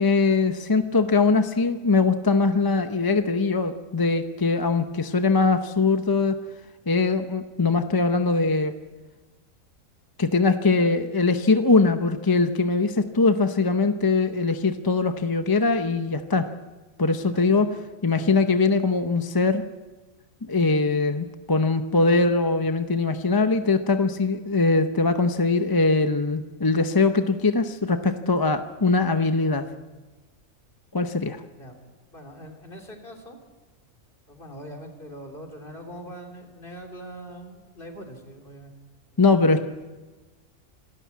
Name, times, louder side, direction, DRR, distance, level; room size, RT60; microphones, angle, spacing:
voice 1, 0.0-6.4 6.9-8.7 10.2-16.5 17.0-17.7 18.0-19.6 20.5-29.7 30.9-31.4 39.2-39.6, left 3 dB, 25° left, 8 dB, 0.6 m, -21 dB
voice 2, 32.1-33.4 34.3-38.7 39.1-39.2, equal, 40° left, 3 dB, 3.4 m, -42 dB
27.0 x 13.5 x 8.4 m, 1.2 s
omnidirectional pair, 1.4 m